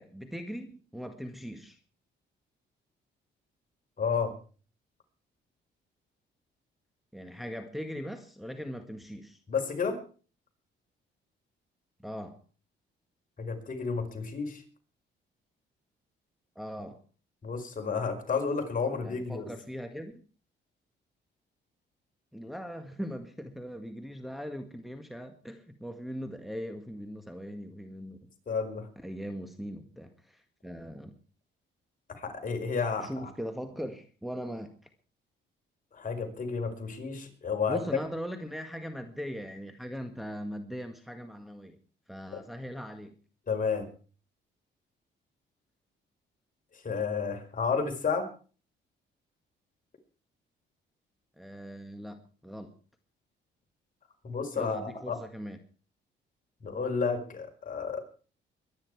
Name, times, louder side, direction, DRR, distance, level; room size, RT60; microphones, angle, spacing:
voice 1, 0.0-1.8 7.1-9.4 12.0-12.4 16.6-17.0 19.0-20.2 22.3-28.3 29.0-31.2 33.0-34.7 37.7-41.8 42.1-43.2 51.4-52.7 54.6-55.6, equal, ahead, 5 dB, 1.8 m, -40 dB
voice 2, 4.0-4.3 9.5-10.0 13.4-14.6 17.4-19.5 28.5-28.9 32.2-33.3 35.9-37.8 42.3-42.4 43.5-43.9 46.7-48.3 54.2-55.2 56.6-58.0, left 5 dB, 45° left, 5 dB, 4.9 m, -31 dB
22.5 x 10.5 x 4.8 m, 0.39 s
cardioid pair, 90°, 20 cm